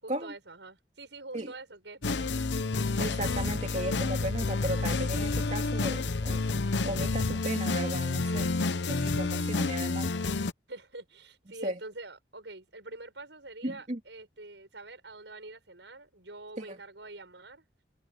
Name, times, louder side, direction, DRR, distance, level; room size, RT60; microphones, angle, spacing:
voice 1, 0.0-2.5 10.7-17.6, right 2 dB, 85° right, 7.0 m, -46 dB
sound 1, 2.0-10.5, left 3 dB, 85° left, 0.9 m, -29 dB
voice 2, 3.0-6.4 6.8-8.5 8.9-10.1 11.6-11.8 13.6-14.0 16.6-16.8, right 1 dB, 40° right, 2.4 m, -35 dB
head